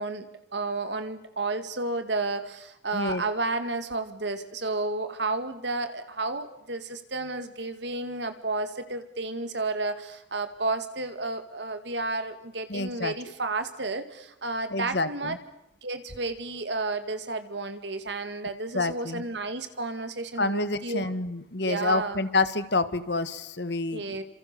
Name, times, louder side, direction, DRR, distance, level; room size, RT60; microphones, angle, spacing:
voice 1, 0.0-15.3 15.8-21.1 21.6-22.2 23.9-24.2, right 3 dB, 70° right, 10 dB, 2.1 m, -32 dB
voice 2, 12.7-13.1 14.7-15.4 18.7-19.2 20.4-24.2, left 3 dB, 65° left, 13 dB, 1.5 m, -28 dB
28.5 x 27.0 x 6.9 m, 0.85 s
head